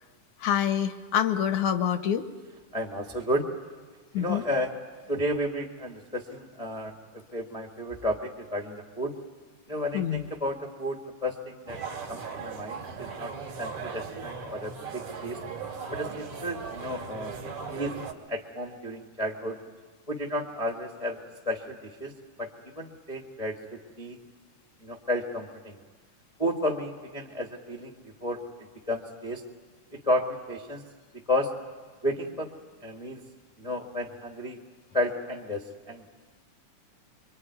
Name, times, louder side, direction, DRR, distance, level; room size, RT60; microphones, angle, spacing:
voice 1, 0.4-2.3 4.1-4.4 9.9-10.2, left 9 dB, 70° left, 10 dB, 2.2 m, -26 dB
voice 2, 2.7-3.5 4.2-4.7 5.1-9.1 9.7-11.8 12.1-13.3 13.6-15.4 15.9-17.4 17.7-17.9 18.3-19.6 20.1-21.2 21.4-22.1 22.4-24.2 24.8-25.8 26.4-27.9 28.2-28.4 28.9-29.4 29.9-30.8 31.1-31.5 32.0-32.5 32.8-33.2 33.6-34.6 34.9-36.0, left 1 dB, 20° left, -1 dB, 0.9 m, -32 dB
sound 1, 11.7-18.1, right 5 dB, 65° right, 3.6 m, -38 dB
25.5 x 24.0 x 9.5 m, 1.4 s
omnidirectional pair, 3.6 m